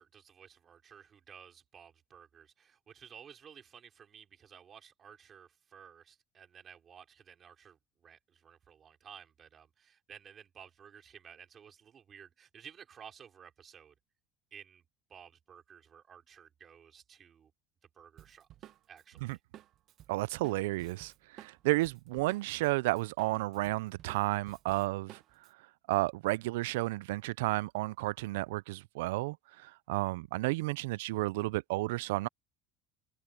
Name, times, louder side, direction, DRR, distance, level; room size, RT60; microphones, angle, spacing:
voice 1, 0.0-13.9 14.5-14.8 15.1-17.5 17.8-18.5 18.9-19.4, right 8 dB, 40° right, 5.0 m, -54 dB
Drum kit, 18.2-22.7 23.0-25.5, right 12 dB, 55° right, 1.2 m, -54 dB
voice 2, 20.1-25.2 25.9-29.4 29.6-32.3, right 20 dB, 85° right, 0.4 m, -32 dB
supercardioid pair, 100°, 0 cm